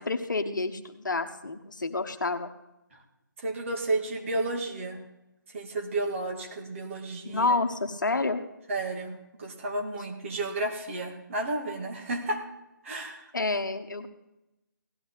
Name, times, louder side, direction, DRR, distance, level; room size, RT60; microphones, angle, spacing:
voice 1, 0.0-2.5 7.2-8.4 13.3-14.1, left 3 dB, 65° left, 8 dB, 1.3 m, -29 dB
voice 2, 3.4-5.0 5.5-7.5 8.7-12.4 12.8-13.2, right 2 dB, 40° right, 2 dB, 2.4 m, -32 dB
17.0 x 13.5 x 4.1 m, 0.92 s
figure-of-eight pair, 150°, 11 cm